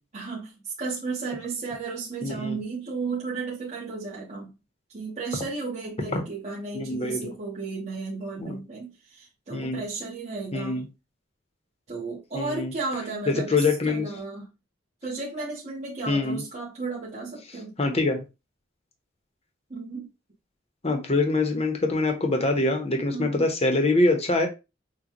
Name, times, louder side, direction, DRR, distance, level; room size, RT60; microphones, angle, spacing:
voice 1, 0.1-4.5 4.9-10.8 11.9-14.5 15.0-17.7 19.7-20.1 23.1-23.5, right 4 dB, 40° right, 1.2 m, -34 dB
voice 2, 2.2-2.5 6.1-6.2 6.7-7.3 8.4-8.6 9.5-9.8 10.5-10.8 12.3-12.7 13.5-14.1 16.1-16.4 17.8-18.2 20.8-24.5, left 2 dB, 35° left, 0.9 m, -24 dB
6.3 x 2.4 x 3.0 m
head